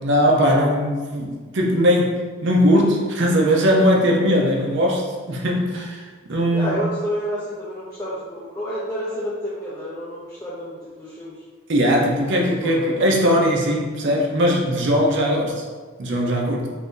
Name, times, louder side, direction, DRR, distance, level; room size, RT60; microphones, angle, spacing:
voice 1, 0.0-6.8 11.7-15.6 16.0-16.7, equal, 55° right, 0 dB, 0.5 m, -19 dB
voice 2, 6.5-11.3 12.3-13.4, equal, 15° left, -9 dB, 0.4 m, -30 dB
2.7 x 2.6 x 3.6 m, 1.4 s
head